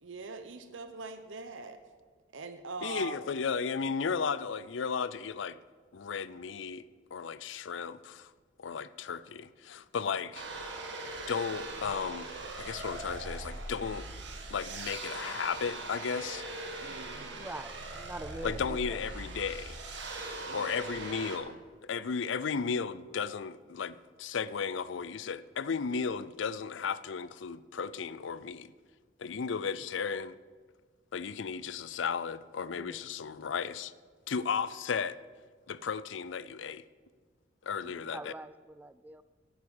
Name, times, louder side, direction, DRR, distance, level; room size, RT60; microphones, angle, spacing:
voice 1, 0.0-1.8 2.3-3.2 16.8-17.5 20.5-20.8 37.8-38.1, right 4 dB, 80° right, 0.8 m, -43 dB
voice 2, 2.8-5.6 5.9-6.8 7.1-8.3 8.6-10.6 11.3-12.3 12.6-14.0 14.5-16.5 18.4-19.8 20.5-28.7 29.2-30.3 31.1-33.9 34.3-35.2 35.7-36.8 37.6-38.3, left 6 dB, 75° left, 0.5 m, -34 dB
sound 1, 10.3-21.4, right 2 dB, 65° right, 1.8 m, -41 dB
voice 3, 17.4-19.0 32.8-33.0 38.1-39.2, right 1 dB, 10° right, 0.3 m, -44 dB
11.0 x 9.3 x 7.2 m
head